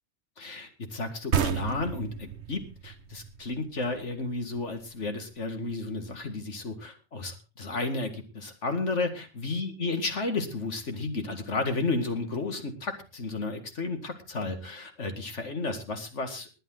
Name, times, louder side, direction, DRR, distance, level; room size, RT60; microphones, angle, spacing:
voice 1, 0.4-16.5, left 3 dB, 65° left, 6 dB, 2.4 m, -32 dB
sound 1, 1.3-4.7, right 8 dB, 60° right, 1.2 m, -31 dB
20.5 x 9.2 x 3.9 m, 0.32 s
omnidirectional pair, 1.3 m